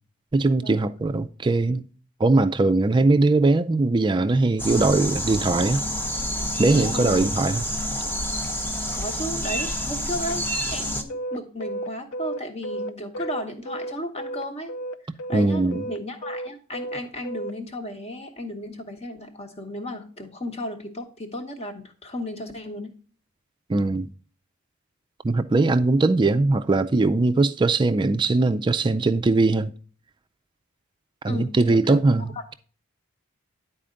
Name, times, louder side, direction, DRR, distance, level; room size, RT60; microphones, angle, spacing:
voice 1, 0.3-1.8 2.2-5.8 6.6-7.6 15.3-15.9 23.7-24.1 25.2-29.7 31.2-32.5, right 2 dB, 20° right, 0.3 m, -20 dB
sound 1, 4.6-11.0, equal, 10° left, 0.6 m, -28 dB
voice 2, 6.7-7.3 8.9-14.7 15.0-22.9 31.2-32.4, equal, 30° left, 1.0 m, -34 dB
sound 2, 11.1-14.4 14.7-17.5, right 1 dB, 70° left, 0.5 m, -33 dB
10.0 x 4.2 x 3.7 m
head